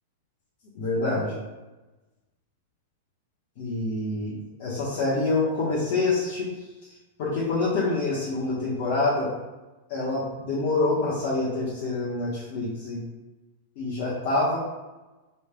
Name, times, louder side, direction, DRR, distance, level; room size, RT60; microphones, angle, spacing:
voice 1, 0.7-1.3 3.6-4.3 4.6-6.5 6.8-6.9 7.2-9.3 9.9-13.0 13.8-14.6, left 2 dB, 55° left, -8 dB, 1.1 m, -26 dB
4.1 x 3.3 x 2.2 m, 1.1 s
hypercardioid pair, 100°, 0 cm